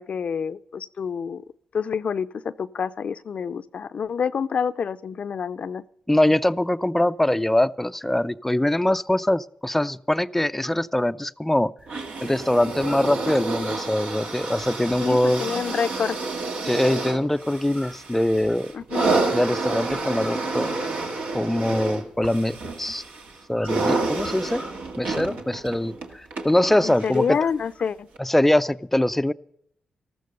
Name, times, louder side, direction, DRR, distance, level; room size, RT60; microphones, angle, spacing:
voice 1, 0.0-1.4 1.7-5.8 15.0-16.2 18.7-19.1 26.8-28.1, left 6 dB, 60° left, 0.5 m, -27 dB
voice 2, 6.1-11.7 12.2-15.5 16.6-20.8 21.3-23.0 23.5-24.7 25.0-27.4 28.2-29.3, left 1 dB, 10° left, 0.4 m, -23 dB
sound 1, 11.9-27.3 28.2-28.3, right 3 dB, 75° right, 1.8 m, -29 dB
14.0 x 13.0 x 5.3 m
cardioid pair, 70°, 2 cm